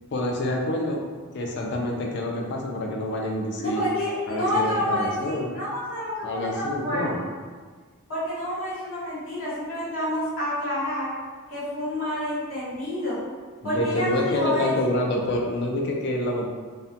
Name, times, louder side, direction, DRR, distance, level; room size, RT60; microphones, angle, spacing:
voice 1, 0.1-1.1 1.3-3.9 4.3-5.5 6.2-7.2 13.6-16.6, left 1 dB, 50° left, 0 dB, 0.4 m, -27 dB
voice 2, 3.6-7.3 8.1-11.1 11.5-13.2 13.6-14.7, left 1 dB, 65° left, -10 dB, 1.1 m, -28 dB
2.3 x 2.1 x 2.7 m, 1.5 s
head